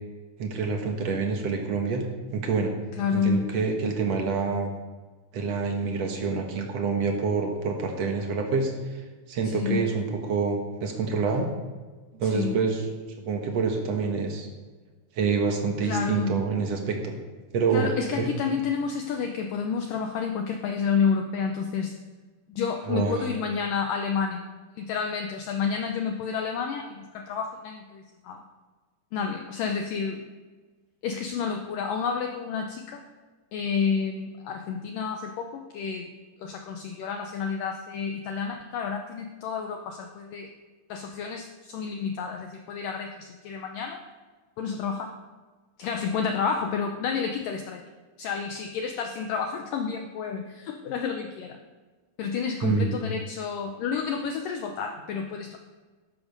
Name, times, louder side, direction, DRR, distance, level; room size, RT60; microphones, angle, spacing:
voice 1, 0.4-2.0 2.3-2.7 3.1-4.7 5.3-9.0 9.3-11.5 12.1-12.8 13.2-14.5 15.2-17.1 17.5-18.3 22.9-23.3 52.6-53.0, right 4 dB, 65° right, 3 dB, 1.7 m, -27 dB
voice 2, 3.0-3.4 9.4-9.9 12.3-12.6 15.9-16.4 17.7-22.0 22.6-24.4 24.8-28.4 29.1-30.2 31.0-33.0 33.5-36.1 36.4-40.5 40.9-44.0 44.6-45.1 45.8-47.8 48.2-51.6 52.2-55.6, left 6 dB, 85° left, 4 dB, 1.9 m, -30 dB
14.0 x 12.5 x 5.3 m, 1.3 s
omnidirectional pair, 5.0 m